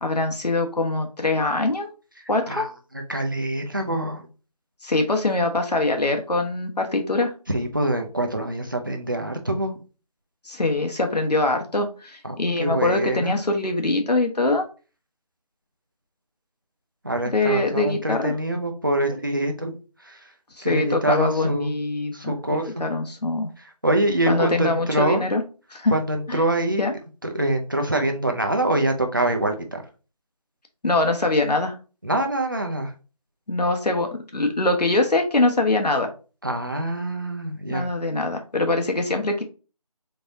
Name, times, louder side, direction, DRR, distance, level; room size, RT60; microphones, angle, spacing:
voice 1, 0.0-1.9 2.3-2.7 4.8-7.3 10.5-14.7 17.3-18.3 20.6-23.5 24.3-25.4 25.7-25.9 26.3-26.4 26.8-26.9 30.8-31.7 33.5-36.1 37.7-39.4, left 2 dB, 85° left, 4 dB, 1.2 m, -23 dB
voice 2, 3.1-4.2 7.5-9.8 12.2-13.3 17.0-19.8 20.0-20.2 20.6-21.7 22.1-22.8 23.8-25.3 25.9-26.8 27.2-29.8 32.0-32.9 36.4-37.9, right 1 dB, 30° right, 3 dB, 0.5 m, -25 dB
4.1 x 3.4 x 2.6 m, 0.35 s
figure-of-eight pair, 175°, 20 cm